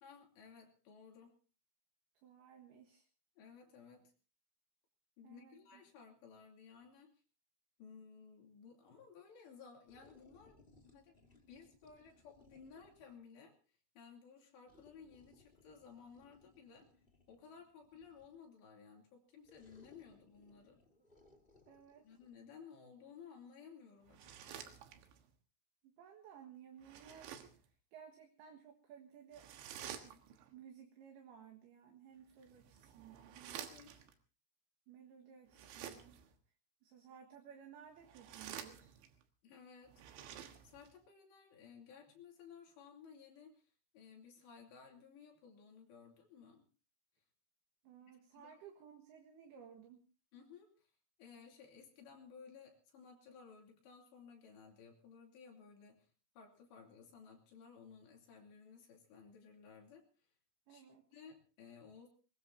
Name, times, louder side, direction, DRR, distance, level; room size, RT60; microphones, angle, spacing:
voice 1, 0.0-1.4 3.4-4.1 5.2-7.1 7.8-11.2 11.5-16.9 17.3-20.8 22.0-24.7 33.7-34.0 39.4-40.0 40.6-46.6 48.3-48.5 50.3-50.9 51.2-56.1 56.3-60.3 60.7-62.1, left 6 dB, 75° left, 1 dB, 5.0 m, -58 dB
voice 2, 2.2-3.1 5.2-5.8 21.7-22.1 25.8-29.5 30.0-30.2 30.5-33.6 34.9-36.1 36.8-38.9 47.8-50.0 60.7-61.1, right 8 dB, 65° right, 2 dB, 3.4 m, -57 dB
sound 1, 9.9-13.2 14.7-18.5 19.4-22.4, left 2 dB, 40° left, 0.8 m, -67 dB
sound 2, 24.1-25.3 26.8-27.7 29.3-30.5 32.3-34.1 35.5-36.3 37.9-39.2 39.9-40.9, right 9 dB, 85° right, 3.8 m, -51 dB
21.5 x 21.0 x 2.8 m, 0.36 s
omnidirectional pair, 5.1 m